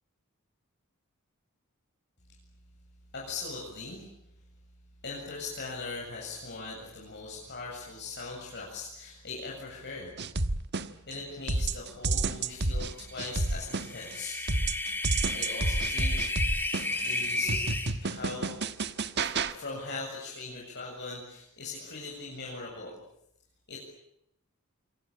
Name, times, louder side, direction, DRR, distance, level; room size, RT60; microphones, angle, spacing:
voice 1, 3.1-4.1 5.0-10.1 11.1-14.4 15.3-16.2 17.0-17.6 18.0-18.6 19.2-22.9 23.7-23.8, left 3 dB, 55° left, -3 dB, 7.7 m, -40 dB
sound 1, 10.2-11.1 11.5-14.1 14.5-19.5, right 3 dB, 50° right, 1.4 m, -30 dB
sound 2, 13.6-17.9, left 2 dB, 10° left, 3.4 m, -32 dB
28.0 x 23.5 x 8.8 m, 0.77 s
head